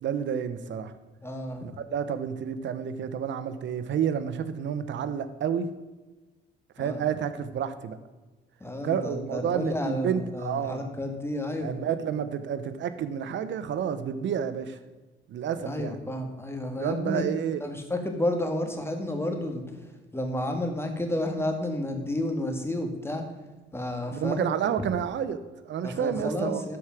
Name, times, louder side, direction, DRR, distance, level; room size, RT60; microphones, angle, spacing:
voice 1, 0.0-0.9 1.6-5.7 6.8-8.0 8.8-10.9 11.6-14.8 15.3-15.9 16.8-17.6 24.1-26.8, right 8 dB, 70° right, 11 dB, 0.9 m, -30 dB
voice 2, 1.2-1.7 6.8-7.0 8.6-11.7 15.7-17.2 17.6-19.6 20.1-23.2 23.7-24.4 24.8-24.9 25.8-26.8, left 1 dB, 10° left, 5 dB, 1.9 m, -31 dB
12.5 x 4.9 x 5.9 m, 1.2 s
cardioid pair, 90°, 20 cm